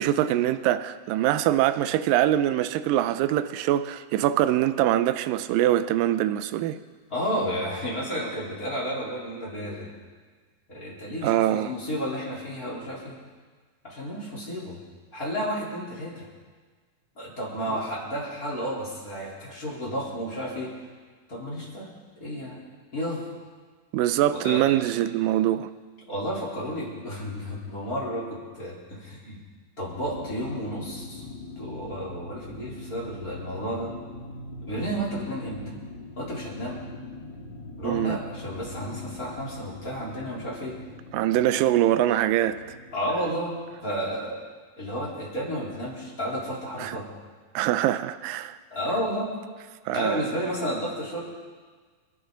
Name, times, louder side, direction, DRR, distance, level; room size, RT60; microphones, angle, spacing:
voice 1, 0.0-6.8 11.2-11.7 23.9-25.7 37.8-38.2 41.1-42.6 46.8-47.0 47.6-48.6 49.9-50.2, right 13 dB, 80° right, 2.3 m, -23 dB
voice 2, 7.1-9.9 10.7-13.2 13.8-14.8 15.1-16.3 17.2-20.7 21.3-21.9 22.2-22.6 22.9-23.2 24.3-24.8 26.1-29.4 29.8-31.2 31.6-33.9 34.6-35.6 36.2-36.8 37.8-40.8 42.9-43.6 43.8-44.4 44.8-47.1 48.7-49.3 49.9-51.2, equal, 25° left, 3.7 m, -32 dB
sound 1, 29.9-44.1, left 1 dB, 45° left, 1.9 m, -42 dB
27.5 x 11.0 x 3.9 m
omnidirectional pair, 4.0 m